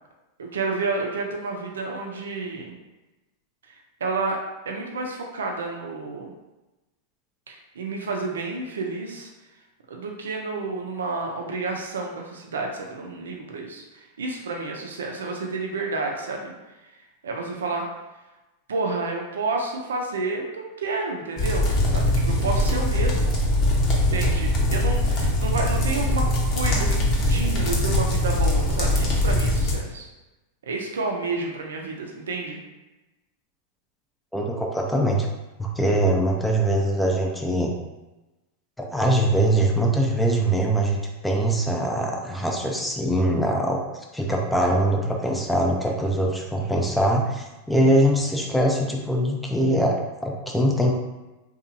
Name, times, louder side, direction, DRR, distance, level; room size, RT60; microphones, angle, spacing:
voice 1, 0.4-2.8 3.7-4.4 4.7-6.3 7.5-9.3 9.9-16.5 17.2-17.9 18.7-23.4 24.0-30.1 30.6-32.6, right 3 dB, 85° right, 1 dB, 0.4 m, -30 dB
sound 1, 21.4-29.7, left 1 dB, 45° left, 0.8 m, -22 dB
voice 2, 34.3-35.3 35.6-37.7 38.8-41.0 41.2-43.8 44.1-50.9, right 1 dB, 5° left, 0 dB, 0.4 m, -22 dB
2.8 x 2.3 x 2.6 m, 1.1 s
hypercardioid pair, 115°, 0 cm